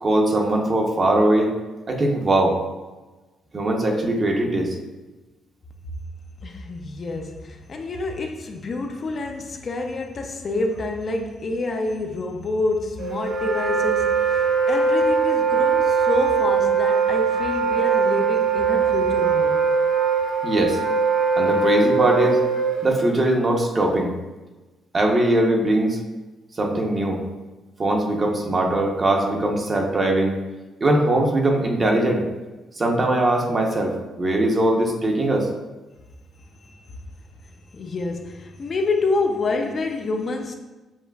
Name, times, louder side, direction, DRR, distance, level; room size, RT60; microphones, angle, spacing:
voice 1, 0.0-1.5 1.9-2.6 3.5-4.8 20.4-20.8 21.4-22.4 22.8-24.1 24.9-26.0 26.6-27.2 27.8-30.4 30.8-32.2 32.8-35.5, right 1 dB, 35° right, 0.7 m, -21 dB
voice 2, 6.4-19.7 36.7-36.8 37.7-40.5, left 3 dB, 45° left, 0.5 m, -27 dB
Wind instrument woodwind instrument, 13.0-22.9, right 5 dB, 85° right, 1.0 m, -21 dB
7.1 x 2.4 x 2.3 m
cardioid pair, 90°, 0 cm